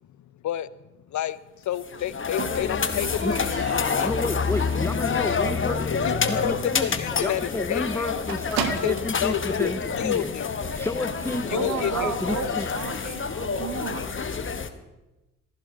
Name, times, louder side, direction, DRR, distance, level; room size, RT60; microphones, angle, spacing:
voice 1, 1.6-3.5 3.9-4.1 6.0-6.5 6.8-8.1 8.6-8.9 9.2-9.7 10.0-10.5 11.5-12.1 12.4-12.7, left 11 dB, 45° left, 18 dB, 0.7 m, -29 dB
sound 1, 1.7-14.7, left 5 dB, 30° left, 1.2 m, -28 dB
Squeak, 2.4-5.1 5.5-5.9 6.2-6.3 6.6-6.7 7.0-7.1 7.4-9.2 10.1-10.2, right 9 dB, 60° right, 1.2 m, -36 dB
voice 2, 4.0-5.9 6.3-10.4 10.8-12.7, left 2 dB, 5° left, 10 dB, 0.6 m, -31 dB
voice 3, 11.5-14.1, right 7 dB, 45° right, 9 dB, 1.5 m, -32 dB
15.5 x 15.0 x 3.9 m, 1.0 s
hypercardioid pair, 45°, 40 cm